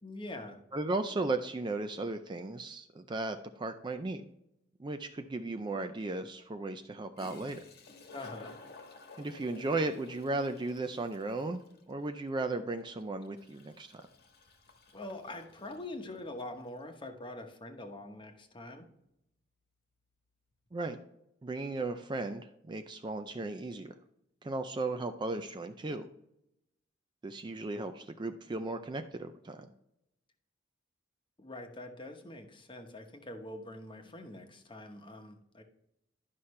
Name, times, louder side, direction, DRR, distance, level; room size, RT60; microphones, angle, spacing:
voice 1, 0.0-0.6 8.1-8.5 14.9-18.9 31.4-35.6, left 2 dB, 25° left, 4 dB, 1.0 m, -44 dB
voice 2, 0.7-4.2 4.8-7.6 9.2-11.6 11.9-14.0 20.7-21.0 21.4-23.9 24.4-26.1 27.2-29.7, right 2 dB, 25° right, 7 dB, 0.4 m, -36 dB
Toilet flush, 5.1-5.2 6.9-7.0 7.2-16.5, left 3 dB, 55° left, 1.3 m, -54 dB
11.0 x 5.7 x 3.2 m, 0.82 s
head